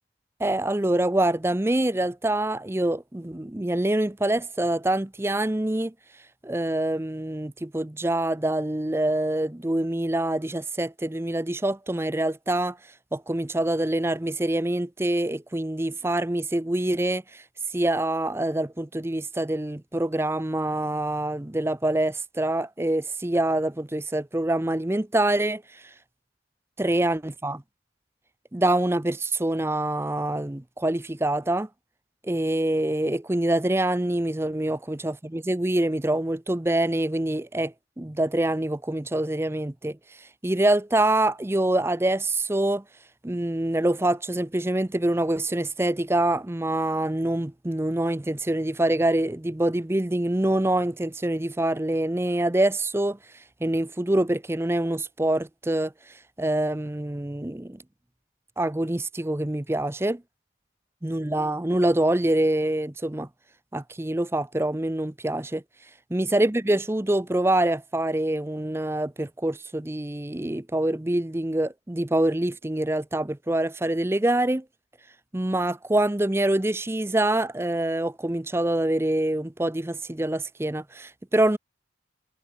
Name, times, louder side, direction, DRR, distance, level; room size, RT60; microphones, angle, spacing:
voice 1, 0.4-5.9 6.4-12.8 13.1-17.4 17.7-25.8 26.8-27.6 28.5-31.7 32.2-42.8 43.2-53.2 53.6-55.9 56.4-57.8 58.6-60.2 61.0-63.3 63.7-65.6 66.1-74.6 75.3-81.6, right 1 dB, 15° right, 0.6 m, -25 dB
head